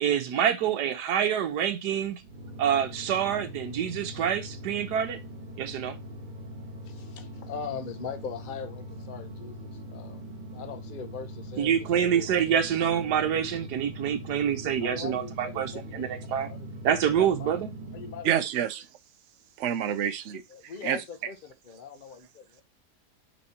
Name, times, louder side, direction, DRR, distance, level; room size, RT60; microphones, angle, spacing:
voice 1, 0.0-2.2 2.6-5.2 5.6-6.0 11.6-16.5 16.8-17.7, right 9 dB, 80° right, 1.4 m, -26 dB
sound 1, 2.2-18.3, equal, 30° right, 1.3 m, -42 dB
voice 2, 6.8-10.2 10.5-12.4 14.8-16.0 16.4-16.7 17.1-17.5 17.9-18.5 20.3-22.6, left 6 dB, 40° left, 0.9 m, -41 dB
voice 3, 18.2-18.8 19.6-20.4 20.8-21.0, right 10 dB, 55° right, 0.9 m, -27 dB
5.5 x 4.1 x 4.2 m
omnidirectional pair, 1.7 m